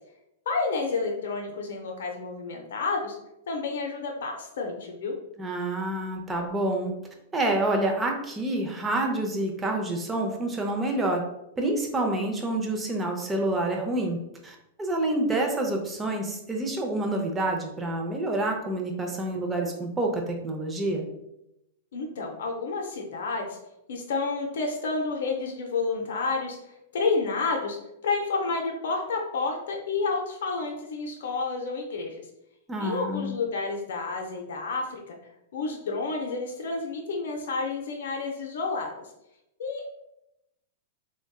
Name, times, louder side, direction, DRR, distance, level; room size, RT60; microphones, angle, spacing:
voice 1, 0.5-3.2 3.5-5.1 21.9-23.6 23.9-26.6 26.9-27.8 28.0-32.2 32.8-35.2 35.5-38.9 39.6-39.9, left 4 dB, 75° left, 1 dB, 0.5 m, -30 dB
voice 2, 5.4-6.9 7.3-11.2 11.6-14.2 14.4-21.1 32.7-33.4, right 2 dB, 15° right, 1 dB, 0.6 m, -28 dB
3.4 x 2.2 x 2.2 m, 0.84 s
hypercardioid pair, 115°, 0 cm